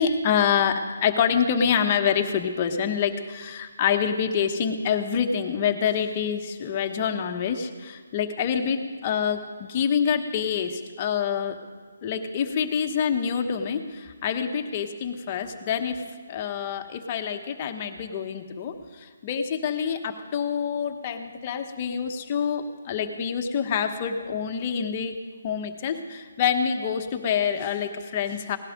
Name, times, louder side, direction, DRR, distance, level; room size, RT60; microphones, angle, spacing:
voice 1, 0.0-11.6 12.0-16.0 16.3-25.1 25.4-28.6, left 7 dB, 30° left, 4 dB, 1.1 m, -26 dB
18.0 x 11.5 x 5.2 m, 1.5 s
hypercardioid pair, 165°, 0 cm